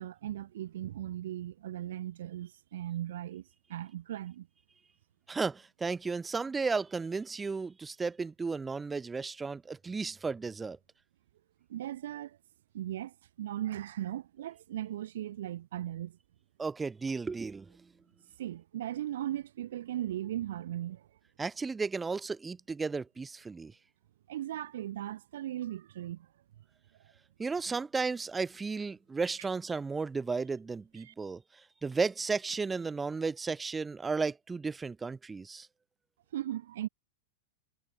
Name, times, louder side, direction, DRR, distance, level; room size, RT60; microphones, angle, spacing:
voice 1, 0.0-3.4 3.7-4.5 11.7-12.4 12.7-16.2 18.4-21.1 24.3-26.3 31.0-31.1 36.3-36.9, right 12 dB, 75° right, 4.0 m, -38 dB
voice 2, 5.3-10.8 16.6-17.7 21.4-23.7 27.4-31.4 31.8-35.7, right 4 dB, 10° right, 0.4 m, -34 dB
supercardioid pair, 170°, 0 cm